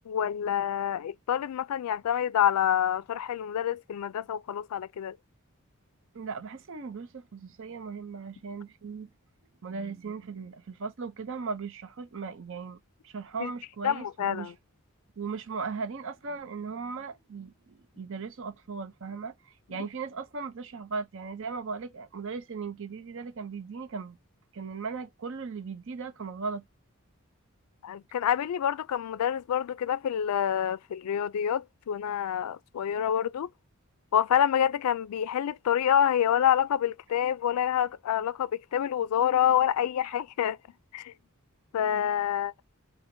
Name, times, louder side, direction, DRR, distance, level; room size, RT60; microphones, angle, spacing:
voice 1, 0.1-5.2 13.4-13.5 13.8-14.5 27.8-33.5 34.1-40.6 40.9-41.1 41.7-42.6, left 9 dB, 90° left, 0.3 m, -27 dB
voice 2, 6.1-9.1 9.6-12.8 13.0-14.5 15.2-24.2 24.5-26.6, right 5 dB, 60° right, 0.6 m, -37 dB
4.3 x 2.1 x 2.6 m
head